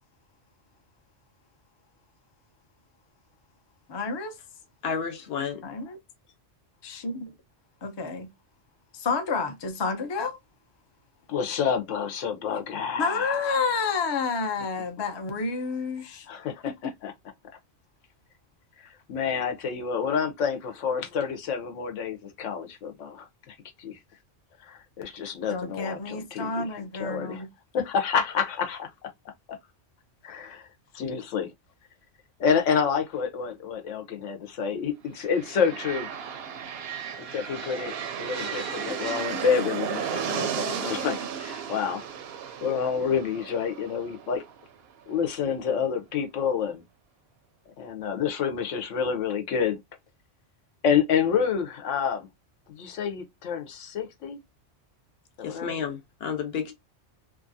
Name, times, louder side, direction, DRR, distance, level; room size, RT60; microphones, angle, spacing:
voice 1, 3.9-4.3 5.6-6.0 6.8-7.1 7.8-8.3 8.9-10.4 13.0-16.3 25.5-27.5, left 4 dB, 40° left, 0.4 m, -29 dB
voice 2, 4.8-5.6 55.4-56.7, left 6 dB, 60° left, 0.9 m, -31 dB
voice 3, 11.3-13.9 16.3-17.1 18.8-24.0 24.6-27.5 27.7-29.1 29.5-29.6 30.2-30.6 30.9-31.5 32.4-36.1 37.3-42.1 42.6-44.4 45.1-46.8 47.8-49.8 50.8-52.3 52.7-54.4 55.4-55.8, left 7 dB, 85° left, 1.0 m, -28 dB
sound 1, 35.2-45.0, right 8 dB, 65° right, 0.7 m, -34 dB
2.8 x 2.4 x 2.6 m
omnidirectional pair, 1.3 m